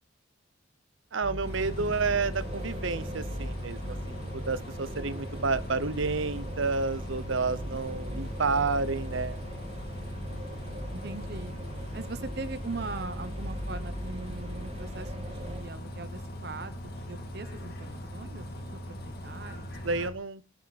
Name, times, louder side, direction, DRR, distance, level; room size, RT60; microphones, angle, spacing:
voice 1, 1.1-9.4 19.8-20.4, right 4 dB, 90° right, 16 dB, 0.9 m, -30 dB
sound 1, 1.2-15.6, equal, 30° right, 1.6 m, -39 dB
Bus, 1.4-20.1, equal, 50° left, 2.4 m, -40 dB
voice 2, 10.9-11.5 11.9-19.7, right 3 dB, 55° right, 12 dB, 1.1 m, -41 dB
23.5 x 8.2 x 4.2 m, 0.37 s
head